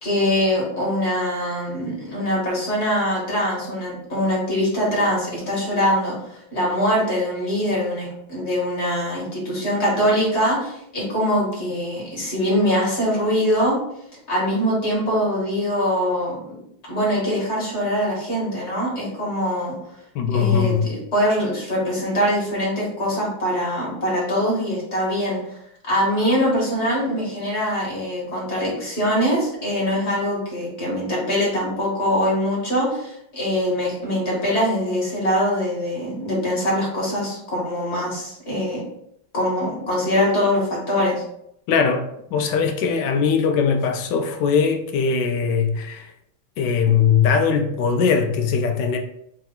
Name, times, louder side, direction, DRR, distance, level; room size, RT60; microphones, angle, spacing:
voice 1, 0.0-6.2 6.5-13.8 14.3-16.6 16.9-19.8 20.3-25.4 25.8-38.8 39.3-41.2, equal, 35° left, 1.8 m, -23 dB
voice 2, 20.1-20.9 41.7-46.1 46.6-49.0, left 6 dB, 75° left, 1.1 m, -20 dB
4.5 x 2.9 x 3.8 m
omnidirectional pair, 2.2 m